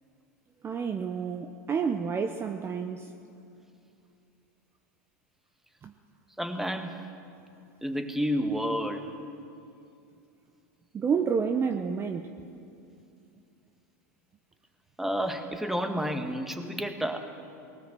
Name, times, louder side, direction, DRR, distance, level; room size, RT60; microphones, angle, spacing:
voice 1, 0.6-3.1 5.8-5.9 10.9-12.3, right 6 dB, 25° right, 1.0 m, -29 dB
voice 2, 6.4-6.9 7.8-9.1 15.0-17.2, equal, 5° right, 1.9 m, -30 dB
19.5 x 18.0 x 7.7 m
hypercardioid pair, 95°, 9 cm